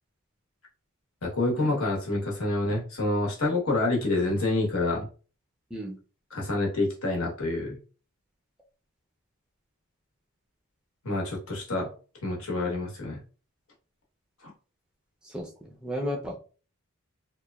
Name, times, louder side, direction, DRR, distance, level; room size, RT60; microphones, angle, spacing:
voice 1, 1.2-5.1 6.3-7.8 11.0-11.9 12.2-13.2 14.4-14.5, left 2 dB, 70° left, -2 dB, 1.0 m, -27 dB
voice 2, 15.2-16.4, equal, 5° right, -1 dB, 0.4 m, -34 dB
2.9 x 2.1 x 2.2 m, 0.36 s
head